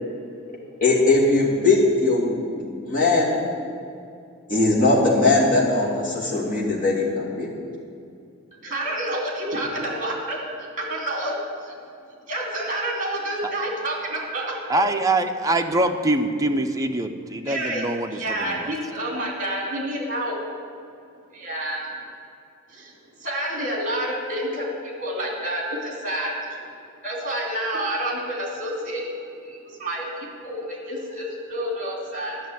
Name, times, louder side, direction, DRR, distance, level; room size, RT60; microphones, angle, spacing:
voice 1, 0.8-3.4 4.5-7.5, left 2 dB, 40° left, -4 dB, 2.7 m, -20 dB
voice 2, 8.6-11.7 12.3-14.6 17.4-17.8 18.1-20.4 21.3-21.9 22.7-22.9 23.2-26.6 27.0-29.1 29.4-32.4, right 1 dB, 35° right, 0 dB, 2.8 m, -29 dB
voice 3, 14.7-18.7, right 2 dB, 15° right, 4 dB, 0.6 m, -24 dB
12.0 x 6.6 x 9.1 m, 2.4 s
head